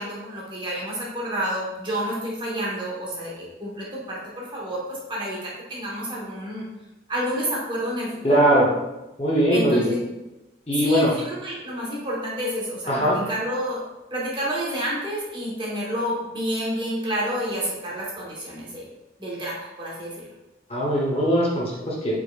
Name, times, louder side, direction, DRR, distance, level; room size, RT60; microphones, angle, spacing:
voice 1, 0.0-6.7 7.1-8.1 9.5-10.0 10.8-13.8 14.1-18.9 19.2-20.2, equal, 25° right, -4 dB, 1.1 m, -29 dB
voice 2, 8.2-8.7 9.2-9.9 10.7-11.1 12.9-13.2 20.7-22.1, equal, 35° left, -4 dB, 0.8 m, -20 dB
4.9 x 4.2 x 2.3 m, 1.0 s
head